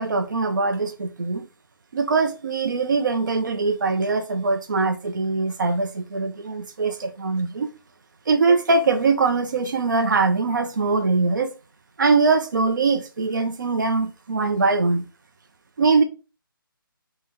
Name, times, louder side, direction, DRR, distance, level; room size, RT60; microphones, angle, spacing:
voice 1, 0.0-1.5 1.9-7.7 8.3-11.5 12.0-15.1 15.8-16.0, right 4 dB, 55° right, 0.4 m, -22 dB
3.8 x 2.1 x 3.3 m
figure-of-eight pair, 150°, 12 cm